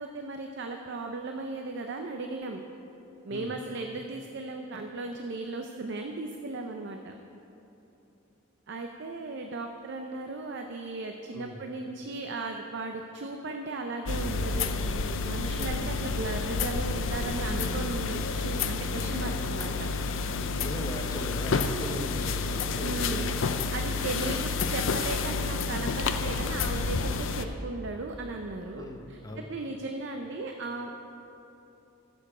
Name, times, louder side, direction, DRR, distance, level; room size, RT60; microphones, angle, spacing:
voice 1, 0.0-2.6 3.2-7.1 8.7-14.7 15.2-19.9 22.8-23.3 23.7-29.2 29.5-30.9, right 3 dB, 55° right, 4 dB, 0.5 m, -36 dB
sound 1, 14.1-27.4, left 4 dB, 65° left, 0.5 m, -30 dB
voice 2, 15.3-15.7 19.2-19.6 20.3-23.4 23.9-24.2 28.8-29.5, left 1 dB, 15° left, 1 dB, 0.7 m, -40 dB
14.5 x 6.9 x 4.9 m, 2.9 s
head